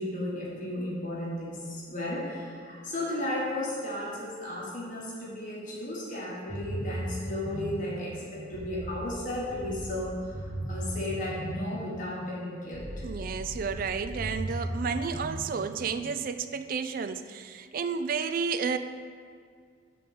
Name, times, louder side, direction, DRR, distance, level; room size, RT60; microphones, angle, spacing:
voice 1, 0.0-13.0, left 1 dB, 40° left, -5 dB, 1.5 m, -34 dB
sound 1, 6.5-16.3, right 1 dB, 15° right, 1.4 m, -38 dB
voice 2, 13.0-18.8, right 5 dB, 45° right, 11 dB, 0.3 m, -31 dB
8.4 x 3.8 x 6.7 m, 2.1 s
head